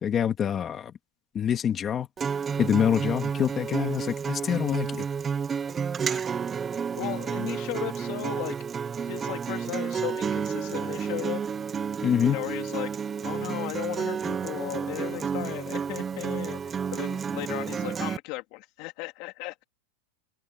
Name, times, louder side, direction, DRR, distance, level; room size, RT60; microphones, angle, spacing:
voice 1, 0.0-0.9 1.3-2.1 2.6-5.1 12.0-12.4, left 8 dB, 20° left, 2.0 m, -25 dB
Acoustic guitar, 2.2-18.2, right 6 dB, 15° right, 0.4 m, -31 dB
voice 2, 7.0-8.6 9.0-11.4 12.3-13.0 13.2-19.6, left 22 dB, 45° left, 2.5 m, -36 dB
open air
supercardioid pair, 160°, 0 cm